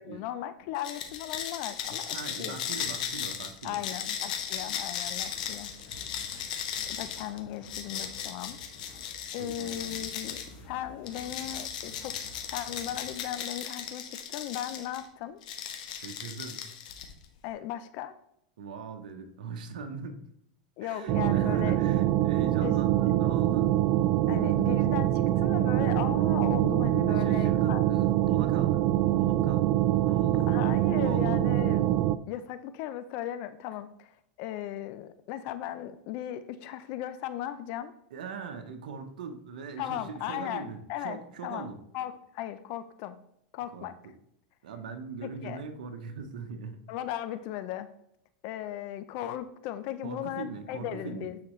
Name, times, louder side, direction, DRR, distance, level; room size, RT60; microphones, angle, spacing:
voice 1, 0.0-2.6 3.6-5.7 6.9-8.6 8.8-8.9 9.3-12.1 12.5-15.4 17.4-18.2 20.8-21.8 22.6-22.8 24.3-27.9 30.5-37.9 39.8-41.7 41.9-43.2 43.5-43.9 45.2-45.6 46.9-47.9 48.4-51.4, left 12 dB, 55° left, 12 dB, 0.5 m, -37 dB
sound 1, 0.8-10.5 11.1-15.0 15.4-17.2, left 8 dB, 75° left, 1.1 m, -37 dB
voice 2, 1.9-3.8 4.5-4.8 6.2-6.5 9.4-10.0 15.9-16.6 18.6-20.3 20.8-23.8 27.1-31.4 38.1-41.8 43.7-44.1 44.6-46.8 50.0-51.3, right 5 dB, 80° right, 6 dB, 0.9 m, -41 dB
sound 2, 2.7-13.2, left 2 dB, 40° left, 1.7 m, -52 dB
sound 3, 21.1-32.2, right 14 dB, 45° right, 0.3 m, -24 dB
9.5 x 4.1 x 3.1 m, 0.73 s
hypercardioid pair, 115°, 4 cm